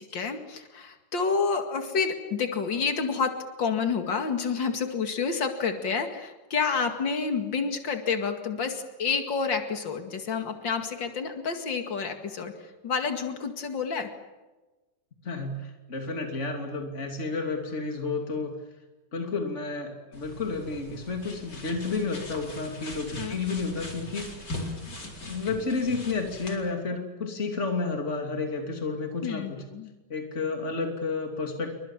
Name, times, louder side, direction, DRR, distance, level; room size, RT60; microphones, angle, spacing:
voice 1, 0.0-3.3 3.6-14.1 23.2-23.3 29.2-29.9, left 5 dB, 90° left, 6 dB, 2.9 m, -29 dB
voice 2, 15.2-18.6 19.1-24.3 24.9-29.6 30.1-31.7, left 4 dB, 40° left, 3 dB, 3.2 m, -31 dB
sound 1, 20.1-26.6, left 1 dB, 65° left, 5.2 m, -40 dB
29.5 x 25.0 x 7.4 m, 1.2 s
omnidirectional pair, 2.0 m